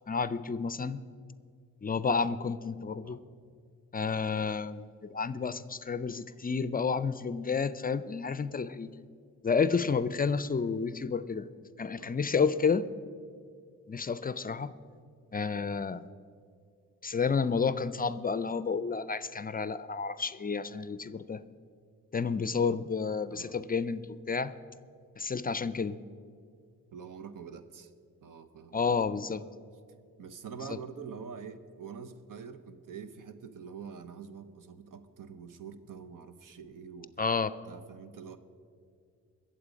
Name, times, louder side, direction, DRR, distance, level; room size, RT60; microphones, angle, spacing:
voice 1, 0.1-1.0 1.8-3.2 3.9-8.9 9.4-11.5 11.8-12.9 13.9-14.8 15.3-16.0 17.0-21.4 22.1-24.5 25.2-26.0 28.7-29.4 37.2-37.5, left 5 dB, 30° left, 15 dB, 0.4 m, -30 dB
voice 2, 2.9-3.2 12.0-12.2 23.3-23.6 26.9-27.9 28.2-29.0 29.9-37.2 37.7-38.4, right 6 dB, 80° right, 10 dB, 0.9 m, -46 dB
21.5 x 7.7 x 5.1 m, 2.3 s
cardioid pair, 100°, 32 cm